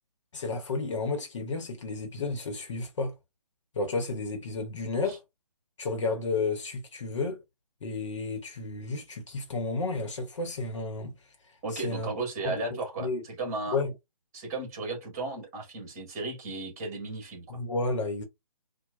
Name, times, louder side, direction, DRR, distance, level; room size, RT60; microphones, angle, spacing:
voice 1, 0.3-3.1 3.7-5.2 5.8-7.4 7.8-11.1 11.7-12.1 12.4-13.2 13.7-13.9 17.5-18.2, left 3 dB, 50° left, 1.0 m, -32 dB
voice 2, 11.6-13.8 14.3-17.6, right 3 dB, 25° right, 1.8 m, -35 dB
4.4 x 2.2 x 2.5 m
hypercardioid pair, 155°, 20 cm